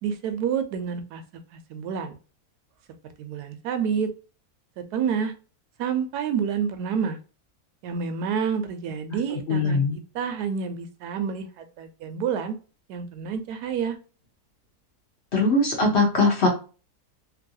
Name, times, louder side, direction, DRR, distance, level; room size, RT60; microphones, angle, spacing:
voice 1, 0.0-1.2 1.5-2.2 3.2-4.1 4.9-5.3 5.8-7.2 7.8-12.5 12.9-14.0, right 7 dB, 85° right, 8 dB, 1.1 m, -28 dB
voice 2, 9.5-10.0 15.3-16.5, left 2 dB, 50° left, 0 dB, 1.0 m, -21 dB
3.0 x 2.6 x 2.6 m, 0.35 s
omnidirectional pair, 1.7 m